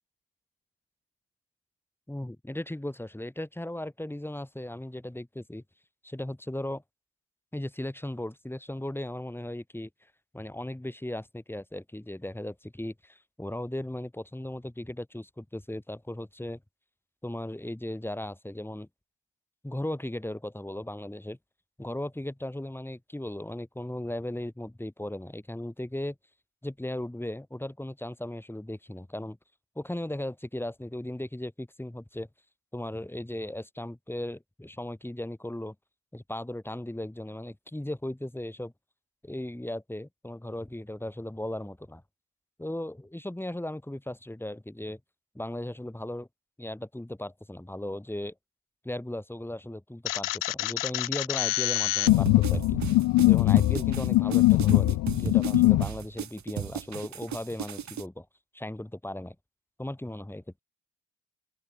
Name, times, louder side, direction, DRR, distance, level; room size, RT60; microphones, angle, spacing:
voice 1, 2.1-5.6 6.0-6.8 7.5-9.9 10.3-16.6 17.2-18.9 19.6-21.4 21.8-26.2 26.6-29.4 29.8-32.3 32.7-35.8 36.1-38.7 39.2-42.0 42.6-45.0 45.4-46.3 46.6-48.3 48.8-52.8 53.3-58.3 58.5-59.4 59.8-60.6, left 1 dB, 5° left, 6.9 m, -37 dB
sound 1, 50.1-55.8, left 18 dB, 80° left, 1.2 m, -23 dB
sound 2, 52.1-58.0, right 9 dB, 60° right, 6.9 m, -35 dB
open air
supercardioid pair, 60°, 32 cm